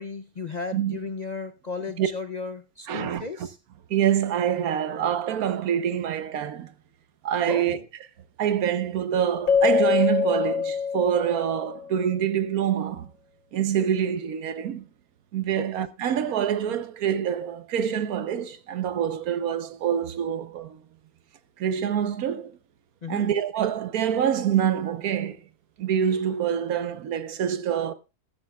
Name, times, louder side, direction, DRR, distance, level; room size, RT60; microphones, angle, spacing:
voice 1, 0.0-3.6 7.4-7.8 15.6-15.7 23.0-23.3, left 4 dB, 45° left, 0.5 m, -35 dB
voice 2, 2.9-3.2 3.9-6.7 7.2-7.8 8.4-13.1 13.5-14.8 15.3-20.8 21.6-22.5 23.1-25.4 25.8-27.9, right 9 dB, 80° right, 1.3 m, -26 dB
Keyboard (musical), 9.5-11.9, left 6 dB, 65° left, 1.3 m, -24 dB
14.0 x 13.5 x 2.3 m
omnidirectional pair, 1.5 m